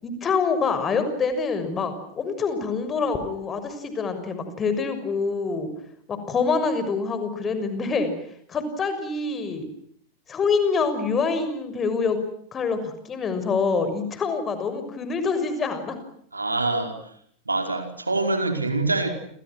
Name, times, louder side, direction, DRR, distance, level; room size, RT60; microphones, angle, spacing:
voice 1, 0.0-5.7 6.1-8.1 8.5-9.7 10.3-12.2 12.5-16.0, left 4 dB, 25° left, 10 dB, 6.4 m, -26 dB
voice 2, 16.3-17.0 17.4-19.1, right 3 dB, 80° right, 6 dB, 5.1 m, -25 dB
29.5 x 29.5 x 6.2 m, 0.65 s
figure-of-eight pair, 90°, 0 cm